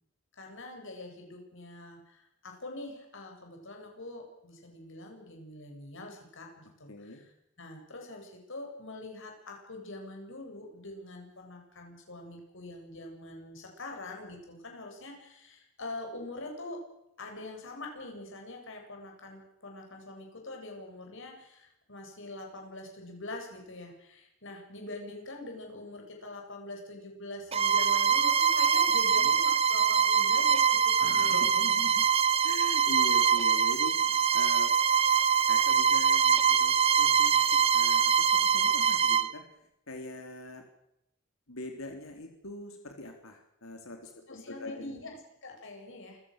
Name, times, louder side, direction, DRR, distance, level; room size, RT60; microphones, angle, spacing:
voice 1, 0.3-7.3 7.6-16.9 17.2-31.5 44.3-46.2, left 2 dB, 65° left, 2 dB, 7.9 m, -44 dB
voice 2, 6.9-7.2 29.1-29.3 31.0-32.0 32.4-34.7 35.5-39.4 39.9-40.6 41.5-45.0, left 2 dB, 80° left, 4 dB, 3.6 m, -42 dB
Bowed string instrument, 27.5-39.3, right 7 dB, 30° right, 0.9 m, -24 dB
28.0 x 16.5 x 6.7 m, 0.81 s
head